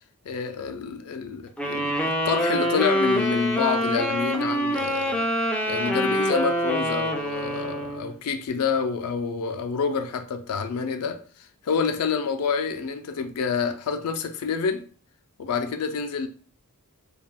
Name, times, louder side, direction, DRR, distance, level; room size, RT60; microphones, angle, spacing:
voice 1, 0.3-5.3 5.7-11.2 11.6-14.9 15.4-16.3, left 5 dB, 80° left, 0.4 m, -28 dB
sound 1, 1.6-8.1, equal, 5° left, 0.3 m, -25 dB
3.3 x 2.3 x 2.3 m
head